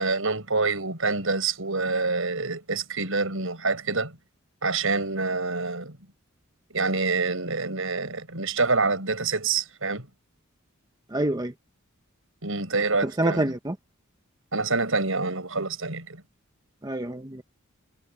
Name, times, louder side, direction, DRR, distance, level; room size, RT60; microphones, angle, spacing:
voice 1, 0.0-4.2 4.6-6.0 6.7-10.1 12.4-13.4 14.5-16.2, right 3 dB, 70° right, 7.9 m, -26 dB
voice 2, 11.1-11.5 13.0-13.7 16.8-17.4, right 1 dB, 20° right, 0.9 m, -27 dB
head